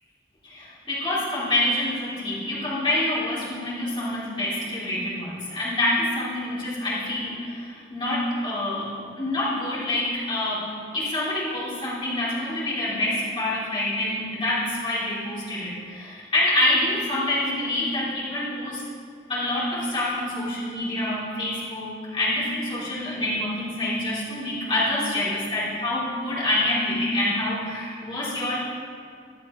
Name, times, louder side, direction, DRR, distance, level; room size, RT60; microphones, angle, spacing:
voice 1, 0.4-8.9 9.2-18.8 19.3-28.6, left 1 dB, 25° left, -9 dB, 3.2 m, -26 dB
14.5 x 9.8 x 3.2 m, 2.2 s
head